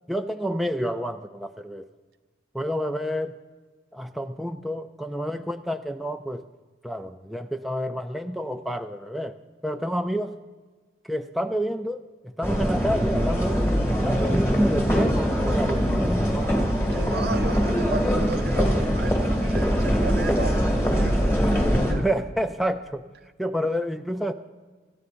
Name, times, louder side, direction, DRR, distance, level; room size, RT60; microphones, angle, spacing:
voice 1, 0.1-1.9 2.5-3.4 3.9-6.4 6.8-9.3 9.6-10.4 11.1-16.5 21.9-23.0 23.4-24.3, equal, ahead, 0.4 m, -29 dB
sound 1, 12.4-21.9, equal, 15° left, 2.1 m, -22 dB
voice 2, 16.9-21.3 21.9-22.0, right 3 dB, 55° right, 0.5 m, -34 dB
25.5 x 13.5 x 2.6 m
head